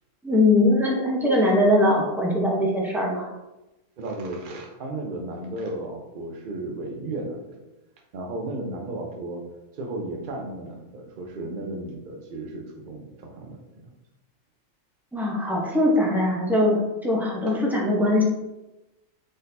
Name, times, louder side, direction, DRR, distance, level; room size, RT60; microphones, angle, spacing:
voice 1, 0.2-3.3 15.1-18.2, left 1 dB, ahead, -3 dB, 0.6 m, -21 dB
voice 2, 4.0-7.6 8.1-9.4 9.7-13.6, right 2 dB, 50° right, 1 dB, 0.8 m, -34 dB
4.2 x 3.9 x 2.6 m, 0.99 s
omnidirectional pair, 1.3 m